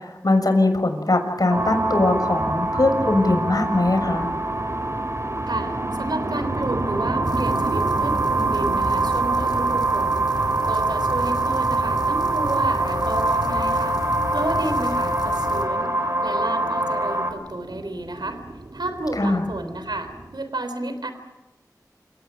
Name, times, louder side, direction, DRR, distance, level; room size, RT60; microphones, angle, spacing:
voice 1, 0.0-4.3 19.2-19.5, left 2 dB, 65° left, 5 dB, 6.3 m, -21 dB
sound 1, 1.5-17.3, right 2 dB, 40° right, 4.2 m, -24 dB
sound 2, 1.5-20.4, right 2 dB, 65° right, 2.2 m, -34 dB
voice 2, 5.5-18.4 18.7-21.1, right 2 dB, 90° right, 8 dB, 3.5 m, -31 dB
sound 3, 7.2-15.6, left 2 dB, 90° left, 3.6 m, -33 dB
28.5 x 18.0 x 9.2 m, 1.1 s
wide cardioid pair, 40°, 7 cm